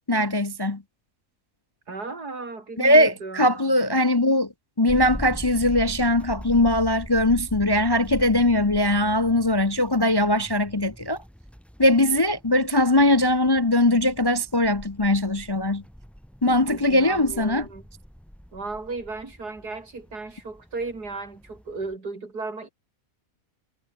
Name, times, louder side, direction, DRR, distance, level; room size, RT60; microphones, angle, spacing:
voice 1, 0.1-0.8 2.8-4.5 4.8-11.2 11.8-15.8 16.4-17.7, left 1 dB, 25° left, 0.6 m, -21 dB
voice 2, 1.9-3.7 16.7-17.8 18.5-22.7, right 3 dB, 80° right, 4.5 m, -35 dB
sound 1, 4.9-21.9, equal, ahead, 3.5 m, -41 dB
omnidirectional pair, 1.7 m